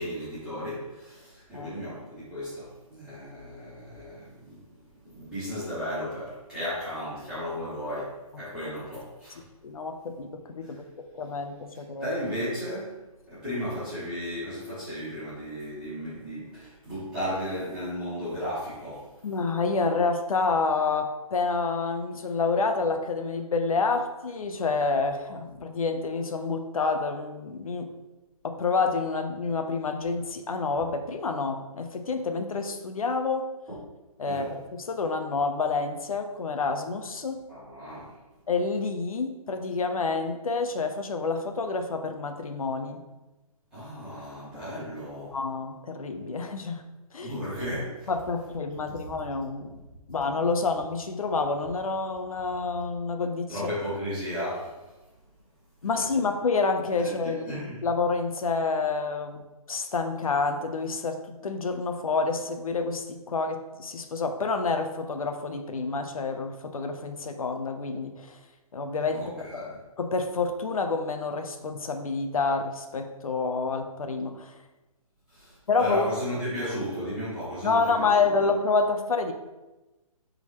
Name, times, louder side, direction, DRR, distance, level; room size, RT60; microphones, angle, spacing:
voice 1, 0.0-4.6 5.0-9.4 10.6-10.8 11.7-12.9 13.3-19.1 33.7-33.8 34.2-34.5 37.5-38.1 43.7-45.4 47.2-48.1 53.5-54.8 57.0-57.8 69.1-69.8 75.3-78.3, equal, 5° right, -15 dB, 2.4 m, -35 dB
voice 2, 9.6-12.1 19.2-27.9 28.4-33.5 34.2-37.4 38.5-43.0 45.3-46.8 47.1-47.3 48.1-49.8 50.1-53.7 55.8-68.4 68.7-69.4 70.0-74.5 75.7-76.0 77.6-79.3, left 4 dB, 70° left, 6 dB, 0.9 m, -28 dB
9.8 x 4.0 x 3.1 m, 1.1 s
hypercardioid pair, 175°, 19 cm